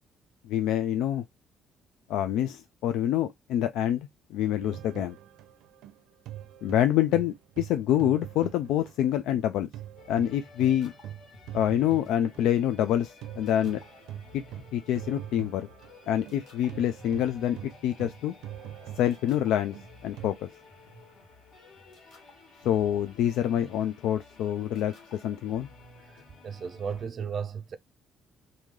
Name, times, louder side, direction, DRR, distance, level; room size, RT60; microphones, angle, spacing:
voice 1, 0.4-1.2 2.1-5.2 6.6-9.7 10.1-10.9 11.5-13.8 14.3-14.4 14.7-15.7 16.1-18.3 19.0-19.8 20.0-20.3 22.6-25.7, left 11 dB, 85° left, 0.3 m, -26 dB
sound 1, 4.6-9.4 9.7-20.3, right 12 dB, 90° right, 0.5 m, -43 dB
sound 2, 10.0-27.1, left 3 dB, 50° left, 1.5 m, -53 dB
voice 2, 26.0-27.8, right 6 dB, 35° right, 0.4 m, -35 dB
3.1 x 2.7 x 3.5 m
cardioid pair, 165°, 0 cm